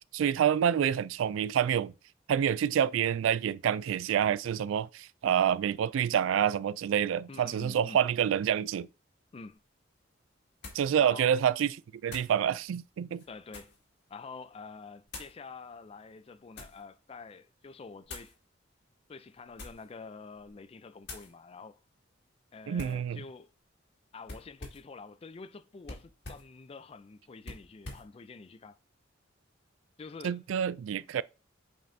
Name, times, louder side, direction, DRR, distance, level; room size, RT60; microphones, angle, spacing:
voice 1, 0.1-1.9 2.3-8.9 10.7-11.8 12.0-13.2 22.7-23.2 30.2-31.2, right 9 dB, 80° right, 0.3 m, -27 dB
voice 2, 7.3-8.0 9.3-9.6 11.0-11.3 13.3-13.7 14.1-18.4 19.1-21.8 22.5-23.5 24.1-28.8 30.0-30.4 31.0-31.1, left 4 dB, 30° left, 0.4 m, -47 dB
sound 1, 9.5-9.6 10.6-10.9 12.1-12.4 13.1-13.8 15.1-15.4 16.1-16.8 18.0-18.4 19.4-19.9 20.3-20.6 21.0-21.3 22.8-23.1 24.2-24.9 25.8-26.5 27.4-28.1, left 2 dB, 60° left, 2.2 m, -46 dB
7.7 x 5.3 x 2.7 m
head